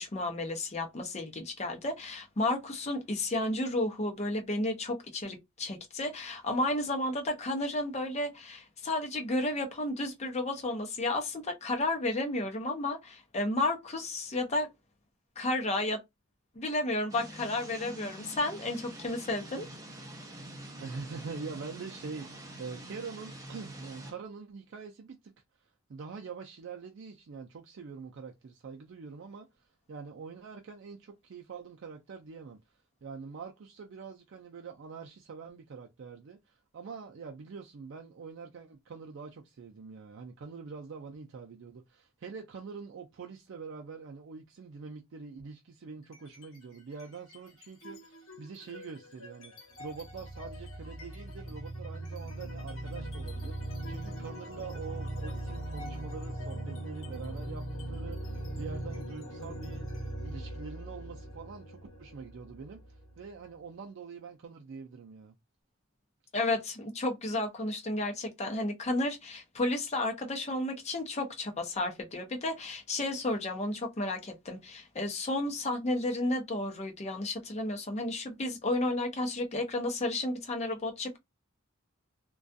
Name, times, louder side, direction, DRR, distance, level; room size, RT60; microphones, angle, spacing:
voice 1, 0.0-14.7 15.4-16.0 16.6-19.7 66.3-81.2, left 2 dB, 35° left, 0.6 m, -32 dB
sound 1, 17.1-24.1, right 1 dB, 15° right, 0.6 m, -46 dB
voice 2, 20.8-25.3 25.6-32.6 33.0-59.9 60.2-65.3, right 5 dB, 65° right, 0.4 m, -45 dB
sound 2, 46.0-46.6 46.9-63.5, right 1 dB, 75° left, 0.9 m, -40 dB
2.3 x 2.3 x 2.5 m
head